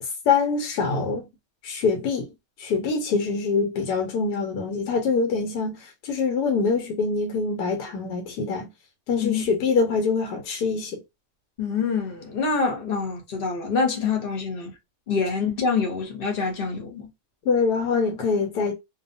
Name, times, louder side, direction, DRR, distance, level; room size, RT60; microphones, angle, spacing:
voice 1, 0.0-1.3 1.6-2.3 2.6-8.7 9.1-11.0 17.5-18.7, left 4 dB, 90° left, 1.2 m, -24 dB
voice 2, 11.6-14.7 15.1-17.1, left 5 dB, 45° left, 0.8 m, -26 dB
2.6 x 2.2 x 2.5 m
omnidirectional pair, 1.7 m